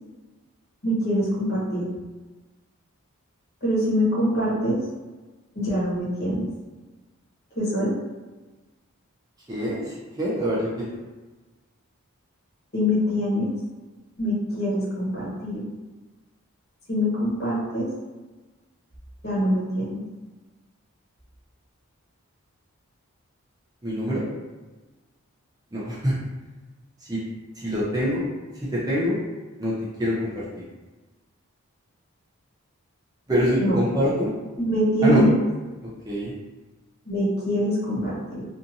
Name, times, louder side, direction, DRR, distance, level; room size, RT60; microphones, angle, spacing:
voice 1, 0.8-1.9 3.6-4.8 5.5-6.5 7.6-7.9 12.7-13.5 14.2-15.6 16.9-17.9 19.2-20.0 33.6-33.8 34.6-35.3 37.0-38.4, equal, 45° left, -7 dB, 0.9 m, -24 dB
voice 2, 9.5-10.9 23.8-24.2 25.7-26.1 27.0-27.2 27.6-28.3 28.6-29.2 29.6-30.4 33.3-34.3 35.0-35.2 36.0-36.3, equal, 15° right, -8 dB, 0.5 m, -25 dB
2.6 x 2.5 x 2.6 m, 1.2 s
head